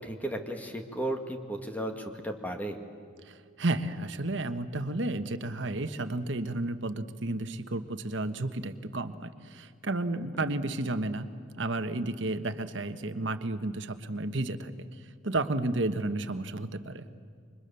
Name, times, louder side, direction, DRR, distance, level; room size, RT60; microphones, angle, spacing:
voice 1, 0.0-2.8 10.3-10.5, right 1 dB, 10° left, 4 dB, 1.8 m, -35 dB
voice 2, 3.2-11.3 11.6-14.9 15.2-17.0, right 2 dB, 65° right, 9 dB, 1.3 m, -32 dB
29.0 x 25.0 x 7.0 m, 2.2 s
head